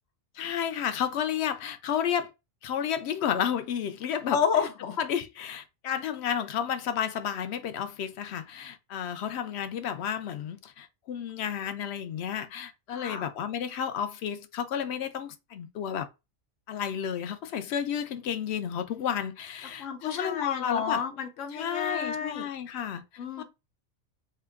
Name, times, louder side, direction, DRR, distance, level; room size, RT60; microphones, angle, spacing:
voice 1, 0.3-2.3 2.6-4.4 5.0-16.1 16.7-21.0 21.5-23.0 23.4-23.5, left 8 dB, 70° left, 0.8 m, -32 dB
voice 2, 4.3-5.0 12.9-13.3 19.8-22.5 23.2-23.4, left 6 dB, 85° left, 1.1 m, -30 dB
2.9 x 2.3 x 3.4 m
omnidirectional pair, 1.2 m